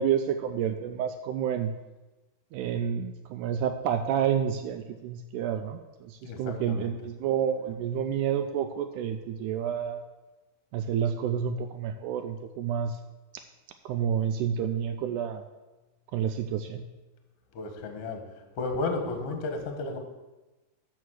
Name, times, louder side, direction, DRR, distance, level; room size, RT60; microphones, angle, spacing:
voice 1, 0.0-1.7 2.5-10.0 10.7-13.0 13.9-15.4 16.1-16.8, right 8 dB, 85° right, 7 dB, 1.8 m, -29 dB
voice 2, 6.2-7.0 17.5-20.0, left 3 dB, 55° left, 4 dB, 1.9 m, -33 dB
12.5 x 4.7 x 6.3 m, 1.1 s
omnidirectional pair, 4.1 m